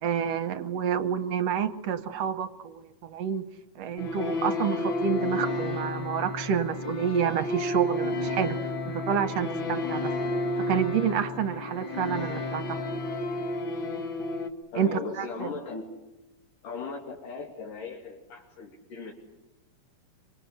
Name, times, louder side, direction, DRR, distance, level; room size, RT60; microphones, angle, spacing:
voice 1, 0.0-3.4 3.8-8.6 9.1-10.1 10.7-12.8 14.8-15.5, right 8 dB, 60° right, 11 dB, 1.9 m, -28 dB
sound 1, 4.0-14.5, left 2 dB, 45° left, 2.1 m, -31 dB
voice 2, 14.7-15.9 16.6-19.1, left 4 dB, 75° left, -2 dB, 4.2 m, -38 dB
25.0 x 25.0 x 8.2 m, 0.97 s
omnidirectional pair, 3.8 m